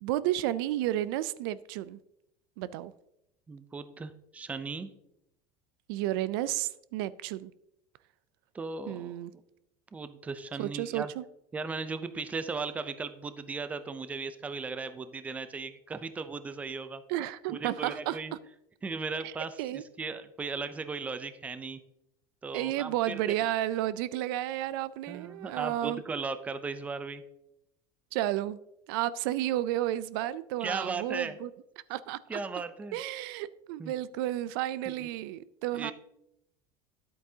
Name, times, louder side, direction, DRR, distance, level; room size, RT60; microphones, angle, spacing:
voice 1, 0.0-2.0 2.6-2.9 5.9-7.5 8.9-9.3 10.6-11.2 17.1-18.2 19.2-19.3 19.6-19.8 22.5-26.0 28.1-28.6 28.9-31.5 31.9-32.4 32.9-35.9, right 13 dB, 75° right, 0.4 m, -32 dB
voice 2, 3.5-4.9 8.5-9.2 9.9-11.1 11.5-17.0 17.5-18.3 18.8-21.8 22.4-23.3 25.1-27.2 30.6-31.4 32.3-33.0 33.8-33.9 34.9-35.1 35.7-35.9, right 4 dB, 10° right, 0.5 m, -37 dB
10.0 x 8.5 x 2.7 m
cardioid pair, 150°, 12 cm